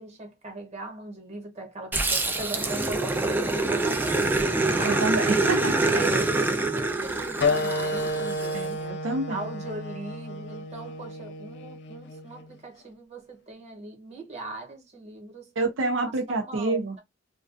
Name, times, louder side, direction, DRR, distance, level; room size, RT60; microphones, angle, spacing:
voice 1, 0.0-4.2 4.7-8.8 9.3-15.5 16.1-17.0, right 2 dB, 35° right, 1.0 m, -39 dB
Growling, 1.9-8.6, right 2 dB, 10° right, 0.3 m, -25 dB
voice 2, 4.9-5.8 8.5-9.4 15.6-17.0, right 2 dB, 80° right, 0.5 m, -27 dB
sound 1, 7.4-12.5, left 2 dB, 60° left, 0.4 m, -31 dB
2.3 x 2.2 x 2.4 m
head